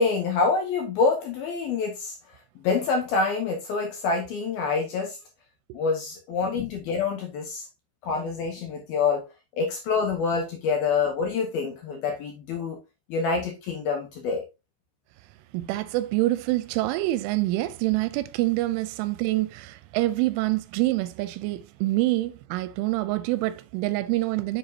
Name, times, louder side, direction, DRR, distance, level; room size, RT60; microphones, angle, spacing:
voice 1, 0.0-2.1 2.6-5.2 5.7-7.6 8.0-9.3 9.6-12.8 13.1-14.4, left 4 dB, 70° left, 2.4 m, -26 dB
voice 2, 15.5-24.6, right 18 dB, 85° right, 2.9 m, -26 dB
7.1 x 7.0 x 2.7 m
omnidirectional pair, 5.7 m